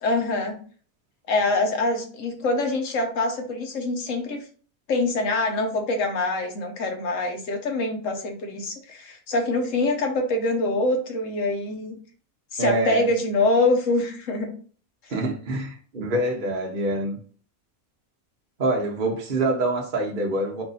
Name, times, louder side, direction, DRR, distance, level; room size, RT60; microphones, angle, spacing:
voice 1, 0.0-0.6 1.3-4.4 4.9-12.0 12.5-14.5, left 2 dB, 65° left, 1.3 m, -24 dB
voice 2, 12.6-13.1 15.1-17.2 18.6-20.6, right 2 dB, 45° right, 0.9 m, -25 dB
4.6 x 2.6 x 4.0 m
omnidirectional pair, 1.5 m